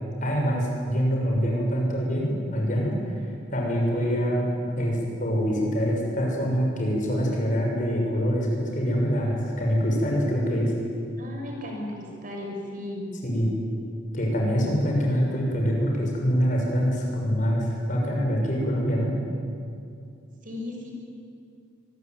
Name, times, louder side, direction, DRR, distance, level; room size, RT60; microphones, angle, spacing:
voice 1, 0.2-3.1 3.5-4.5 4.8-10.7 13.2-13.5 14.1-19.1, equal, 40° left, -1 dB, 6.6 m, -25 dB
voice 2, 11.2-13.1 20.4-20.9, left 1 dB, 45° right, 0 dB, 6.1 m, -35 dB
24.0 x 21.5 x 9.5 m, 2.4 s
head